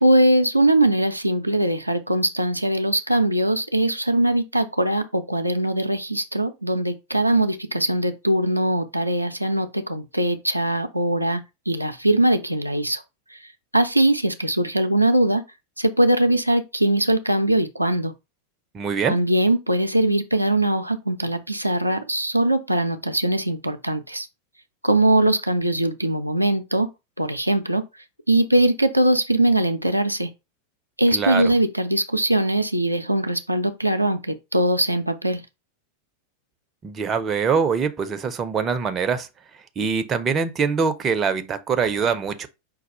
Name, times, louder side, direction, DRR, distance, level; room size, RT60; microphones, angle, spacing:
voice 1, 0.0-11.4 11.7-13.0 13.3-13.4 13.7-15.4 15.8-18.1 19.1-24.3 24.8-26.9 27.2-27.8 28.3-30.3 31.0-35.4, right 1 dB, 90° right, 0.5 m, -21 dB
voice 2, 18.7-19.2 31.1-31.5 36.8-39.3 39.8-42.5, right 6 dB, 25° right, 0.5 m, -23 dB
5.2 x 2.3 x 4.1 m
figure-of-eight pair, 90°, 0 cm